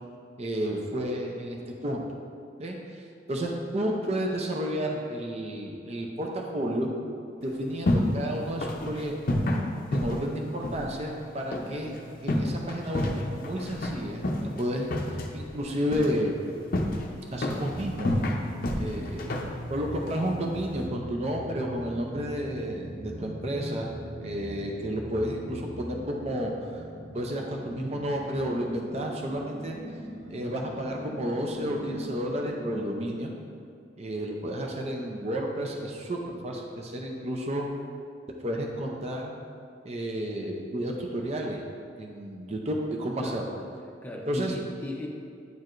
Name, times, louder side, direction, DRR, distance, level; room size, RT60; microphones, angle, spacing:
voice 1, 0.4-2.0 2.6-3.0 3.3-6.9 7.4-9.4 9.9-11.9 12.2-16.3 17.3-18.2 18.8-19.4 19.7-23.9 24.2-26.8 27.1-29.8 30.3-33.3 34.0-37.7 38.4-39.4 39.8-41.6 42.0-43.6 44.3-44.6, equal, 35° right, 0 dB, 0.6 m, -31 dB
sound 1, 7.4-20.9, left 1 dB, 55° left, 0.6 m, -31 dB
sound 2, 17.7-32.9, equal, 80° right, 1.2 m, -41 dB
voice 2, 44.0-45.1, left 1 dB, 10° left, -2 dB, 0.6 m, -38 dB
9.4 x 4.6 x 2.5 m, 2.3 s
head